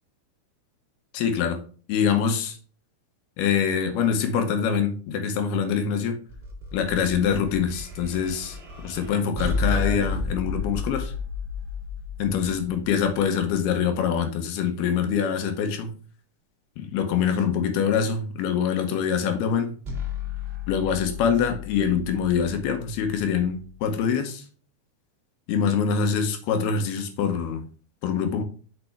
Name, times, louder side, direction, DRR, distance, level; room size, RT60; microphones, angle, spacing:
voice 1, 1.1-1.6 1.9-2.6 3.4-6.2 6.7-11.1 12.2-15.9 16.8-19.7 20.7-24.5 25.5-27.6 28.0-28.4, left 7 dB, 75° left, 2.8 m, -24 dB
sound 1, 6.3-13.6 19.8-23.9, left 4 dB, 90° right, 0.5 m, -33 dB
6.6 x 5.7 x 3.3 m
omnidirectional pair, 4.7 m